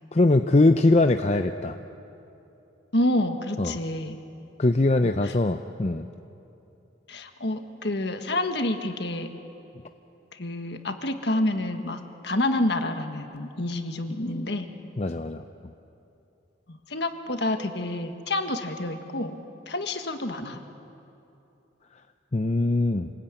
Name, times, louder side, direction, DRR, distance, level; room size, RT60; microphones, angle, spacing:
voice 1, 0.1-1.8 3.6-3.8 4.6-6.1 15.0-15.4 22.3-23.1, left 2 dB, 35° left, 7 dB, 0.6 m, -21 dB
voice 2, 2.9-4.2 5.0-5.3 7.1-9.3 10.4-14.6 16.7-19.3 19.7-20.6, left 1 dB, 60° left, 6 dB, 1.6 m, -28 dB
27.5 x 19.5 x 9.0 m, 2.9 s
head